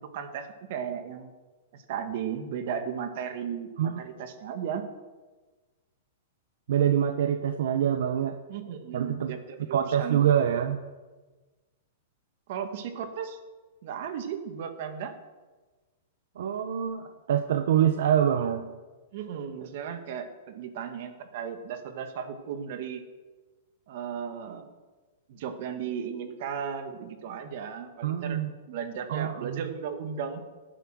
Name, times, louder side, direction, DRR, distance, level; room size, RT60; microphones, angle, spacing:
voice 1, 0.0-1.3 1.7-4.8 8.5-10.2 12.5-13.4 13.8-15.1 19.1-23.0 23.9-24.7 25.3-28.4 28.7-30.4, right 7 dB, 50° right, 7 dB, 1.9 m, -35 dB
voice 2, 6.7-8.4 8.9-9.4 9.7-10.8 16.4-18.7 28.0-28.5 29.1-29.6, right 9 dB, 70° right, 8 dB, 1.0 m, -25 dB
18.0 x 10.0 x 6.2 m, 1.3 s
supercardioid pair, 165°, 0 cm